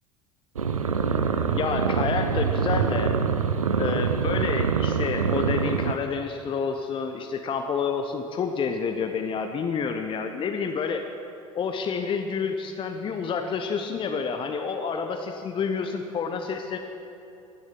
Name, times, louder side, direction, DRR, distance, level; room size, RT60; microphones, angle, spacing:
sound 1, 0.6-5.9, right 6 dB, 80° right, 0.7 m, -25 dB
voice 1, 1.5-3.1 3.8-11.0 11.5-16.8, left 5 dB, 30° left, 5 dB, 0.9 m, -29 dB
15.5 x 11.0 x 6.2 m, 2.9 s
figure-of-eight pair, 70°, 17 cm